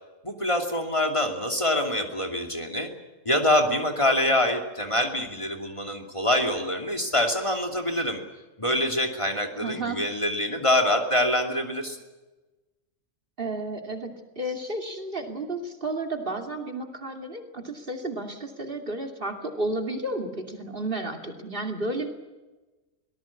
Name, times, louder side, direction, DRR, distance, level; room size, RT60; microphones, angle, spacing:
voice 1, 0.2-2.9 3.2-8.2 8.6-12.0, left 1 dB, 25° left, 3 dB, 2.7 m, -25 dB
voice 2, 9.6-10.0 13.4-22.1, right 2 dB, 45° right, 4 dB, 2.8 m, -32 dB
24.5 x 19.0 x 8.5 m, 1.2 s
omnidirectional pair, 1.3 m